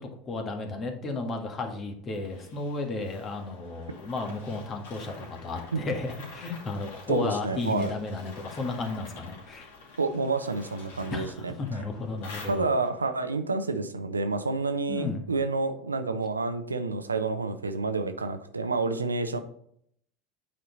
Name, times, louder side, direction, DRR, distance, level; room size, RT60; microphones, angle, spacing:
voice 1, 0.0-9.7 11.1-12.7 14.9-15.2, left 3 dB, 35° left, 4 dB, 1.7 m, -33 dB
sound 1, 2.1-13.1, left 3 dB, 70° left, 2.4 m, -48 dB
voice 2, 7.1-7.9 10.0-11.8 12.5-19.4, right 3 dB, 90° right, 9 dB, 0.7 m, -29 dB
8.5 x 4.5 x 4.0 m, 0.66 s
hypercardioid pair, 80°, 0 cm